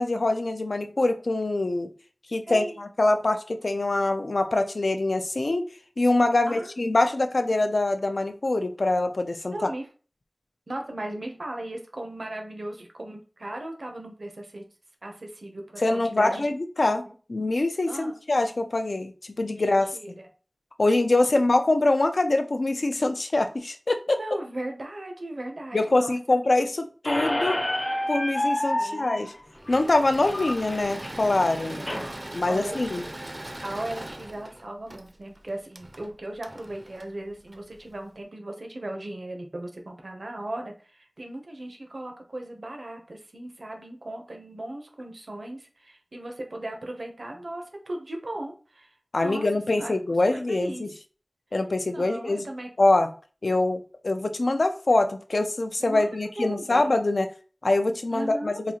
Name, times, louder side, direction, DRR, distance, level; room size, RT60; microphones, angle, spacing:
voice 1, 0.0-1.9 2.3-5.6 6.0-9.7 15.8-17.0 17.3-19.9 20.8-24.2 25.7-27.6 28.1-29.3 29.7-31.8 32.3-33.0 49.1-50.9 51.5-52.5 52.8-53.1 53.4-57.3 57.6-58.5, left 2 dB, 90° left, 7 dB, 0.4 m, -24 dB
voice 2, 2.5-2.8 6.5-6.7 7.4-7.5 9.5-9.9 10.7-14.7 15.0-16.5 16.8-17.1 17.9-18.1 19.6-20.3 20.8-21.4 24.1-26.2 28.7-29.2 29.8-29.9 30.2-30.5 31.8-33.1 33.6-49.5 49.7-49.9 50.3-50.9 51.8-52.7 55.8-56.9 58.1-58.6, right 1 dB, 80° right, 3 dB, 0.7 m, -37 dB
Squeak, 27.0-32.1, left 1 dB, 50° left, 0.8 m, -30 dB
Engine / Mechanisms, 29.5-37.9, right 1 dB, 35° right, 0.4 m, -40 dB
3.9 x 2.4 x 2.8 m, 0.38 s
wide cardioid pair, 50°, 0 cm